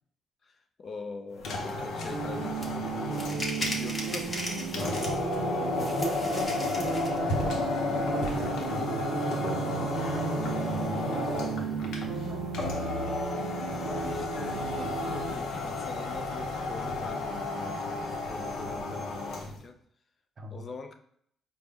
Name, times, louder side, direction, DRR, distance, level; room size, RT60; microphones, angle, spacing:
voice 1, 0.8-4.9 13.8-19.7 20.5-20.9, left 4 dB, 45° left, 5 dB, 0.4 m, -43 dB
sound 1, 1.3-19.6, left 2 dB, 80° left, 0.7 m, -32 dB
sound 2, 2.1-15.4, right 6 dB, 90° right, 0.4 m, -36 dB
sound 3, 2.6-2.7 3.1-5.3 5.8-7.2, left 1 dB, 30° left, 0.9 m, -37 dB
voice 2, 5.8-12.5 20.4-20.7, right 3 dB, 40° right, 5 dB, 0.6 m, -40 dB
4.5 x 2.0 x 3.5 m, 0.68 s
cardioid pair, 90°, 0 cm